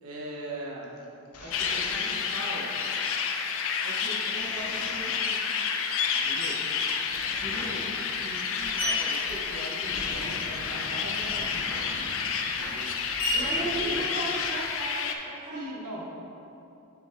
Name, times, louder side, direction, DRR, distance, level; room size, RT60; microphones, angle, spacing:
voice 1, 0.0-0.9 1.4-2.7 3.8-5.4 6.1-6.6 7.4-11.6 12.6-12.9 13.3-14.1 15.5-16.0, right 1 dB, 85° right, -3 dB, 1.3 m, -40 dB
sound 1, 0.8-2.9 4.3-5.3 7.0-13.8, left 2 dB, 75° left, 0.8 m, -43 dB
sound 2, 1.5-15.1, left 6 dB, 60° left, 0.5 m, -30 dB
Screech, 6.4-6.9 7.6-10.3 10.6-14.9, left 1 dB, 40° left, 1.3 m, -36 dB
voice 2, 13.3-15.6, right 2 dB, 30° right, -4 dB, 0.7 m, -35 dB
7.0 x 5.0 x 3.7 m, 2.8 s
head